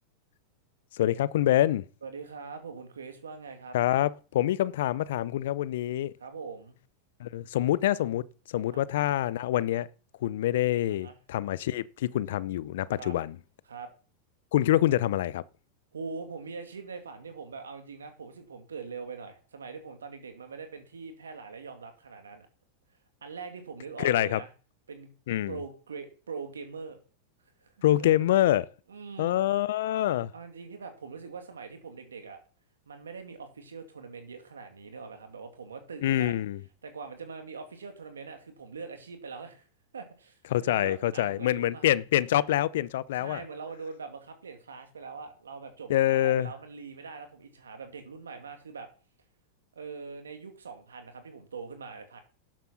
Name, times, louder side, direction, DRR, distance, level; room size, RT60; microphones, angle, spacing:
voice 1, 0.9-1.9 3.7-6.1 7.2-9.9 10.2-13.4 14.5-15.4 24.0-24.4 25.3-25.6 27.8-28.7 29.2-30.3 36.0-36.6 40.5-43.4 45.9-46.5, left 13 dB, 70° left, 0.6 m, -26 dB
voice 2, 2.0-3.8 6.2-6.8 8.7-8.8 11.0-11.2 13.0-13.2 13.7-13.9 15.9-22.5 23.2-24.5 24.9-25.1 25.5-27.0 27.6-28.3 28.9-29.4 30.3-32.4 32.9-36.4 36.8-39.7 39.9-41.9 43.1-48.9 49.7-52.2, right 5 dB, 85° right, 2.4 m, -42 dB
11.5 x 7.6 x 5.8 m
hypercardioid pair, 100°, 0 cm